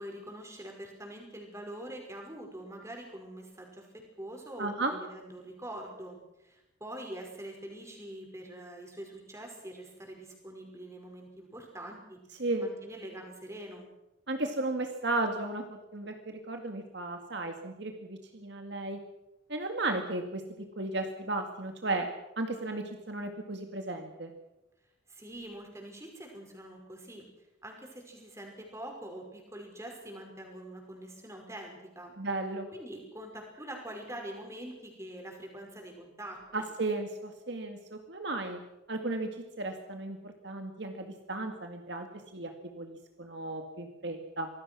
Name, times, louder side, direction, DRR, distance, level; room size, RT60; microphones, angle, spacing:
voice 1, 0.0-12.2 12.6-13.9 25.1-27.2 27.6-32.1 32.7-36.7, right 1 dB, 15° right, 2 dB, 5.5 m, -44 dB
voice 2, 4.6-4.9 12.4-12.7 14.3-19.0 19.5-20.4 20.8-22.1 22.4-24.3 32.2-32.7 36.5-38.6 38.9-39.3 39.6-42.1 42.3-44.5, right 2 dB, 55° right, 4 dB, 2.1 m, -34 dB
26.0 x 19.0 x 6.2 m, 0.96 s
head